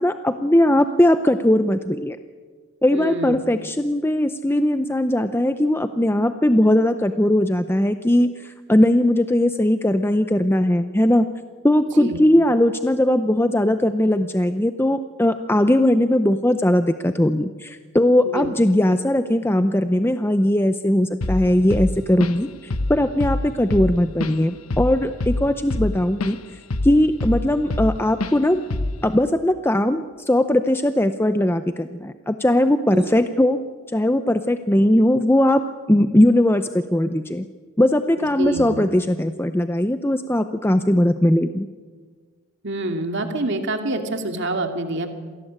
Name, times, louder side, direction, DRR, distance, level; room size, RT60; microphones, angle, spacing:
voice 1, 0.0-2.2 2.8-11.3 11.6-26.4 26.8-28.6 29.0-33.6 33.9-35.6 35.9-37.4 37.8-41.7, left 1 dB, 10° left, 9 dB, 0.6 m, -19 dB
voice 2, 2.9-3.4 12.0-12.2 18.2-18.5 32.9-33.1 38.2-38.9 42.6-45.1, right 2 dB, 55° right, 5 dB, 2.5 m, -26 dB
Drum kit / Drum, 21.2-21.5 21.7-22.5 22.7-23.0 23.2-26.4 26.7-27.9 28.2-28.4 28.7-29.0, left 2 dB, 80° left, 1.2 m, -25 dB
27.5 x 18.0 x 8.8 m, 1.5 s
head